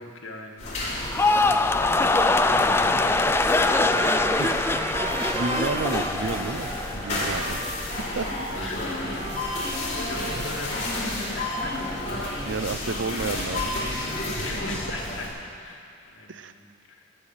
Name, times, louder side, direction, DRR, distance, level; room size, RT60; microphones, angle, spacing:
voice 1, 0.0-4.3 8.1-12.0 12.3-12.6 14.2-17.2, left 2 dB, 75° left, 0 dB, 1.8 m, -41 dB
sound 1, 0.6-15.3, left 1 dB, 35° left, 3.2 m, -32 dB
sound 2, 1.0-7.3 7.6-8.1, left 2 dB, 10° left, 0.3 m, -23 dB
Trumpet, 3.6-10.9, right 3 dB, 25° right, 0.6 m, -36 dB
voice 2, 4.4-4.8 5.3-7.6 8.1-8.3 12.5-13.8 14.3-14.5 16.3-16.5, right 3 dB, 65° right, 11 dB, 0.6 m, -31 dB
16.0 x 6.8 x 8.8 m, 2.4 s
head